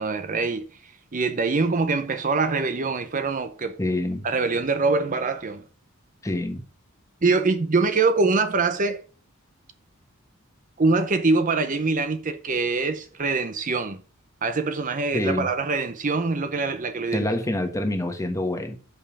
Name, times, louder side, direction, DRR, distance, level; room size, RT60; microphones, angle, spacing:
voice 1, 0.0-3.8 4.2-5.6 7.2-9.0 10.8-14.0 14.4-17.3, right 3 dB, 40° right, 0.7 m, -24 dB
voice 2, 3.8-4.3 6.2-6.6 15.1-15.5 17.1-18.8, left 1 dB, 15° left, 1.3 m, -26 dB
6.8 x 5.6 x 6.9 m
head